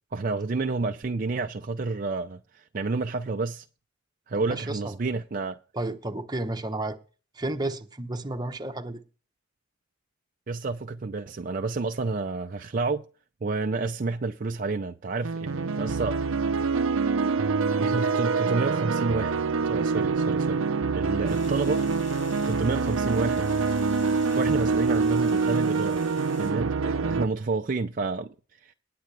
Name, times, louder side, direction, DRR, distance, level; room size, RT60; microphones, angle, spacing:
voice 1, 0.1-3.7 4.3-5.6 10.5-13.1 13.4-16.2 16.8-16.9 17.8-20.6 20.9-21.9 22.4-23.5 24.4-26.0 26.4-28.7, right 3 dB, 40° right, 0.5 m, -30 dB
voice 2, 4.4-5.0 5.7-7.0 7.3-9.0, right 2 dB, 20° right, 1.0 m, -32 dB
sound 1, 15.2-27.2, right 4 dB, 90° right, 0.7 m, -25 dB
sound 2, 21.3-26.5, left 3 dB, 70° left, 4.9 m, -49 dB
19.5 x 7.7 x 3.3 m
head